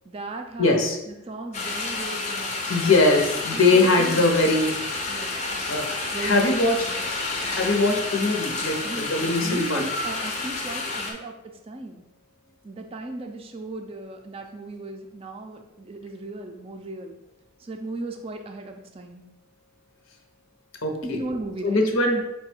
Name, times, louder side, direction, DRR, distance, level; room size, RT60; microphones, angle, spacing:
voice 1, 0.0-2.9 3.5-4.4 5.1-5.6 6.1-6.5 8.8-12.0 12.6-17.2 17.6-19.2 21.0-21.8, right 2 dB, 25° right, 4 dB, 0.4 m, -36 dB
voice 2, 0.6-1.0 2.7-4.7 5.7-6.8 7.4-9.8 20.8-21.2 21.6-22.2, left 2 dB, 70° left, 3 dB, 0.8 m, -21 dB
sound 1, 1.5-11.1, left 3 dB, 30° left, 0.6 m, -30 dB
4.8 x 2.3 x 4.3 m, 0.89 s
head